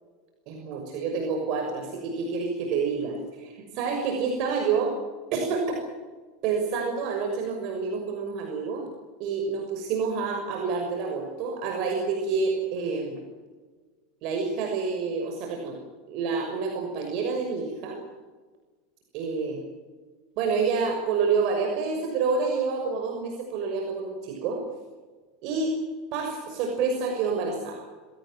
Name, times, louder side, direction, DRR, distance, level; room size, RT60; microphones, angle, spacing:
voice 1, 0.5-4.9 5.3-5.7 6.4-8.8 9.2-13.2 14.2-15.8 16.1-18.0 19.1-19.6 20.4-24.6 25.4-25.7 26.1-27.8, right 5 dB, 55° right, 3 dB, 6.2 m, -28 dB
26.5 x 18.0 x 9.2 m, 1.4 s
supercardioid pair, 140°, 0 cm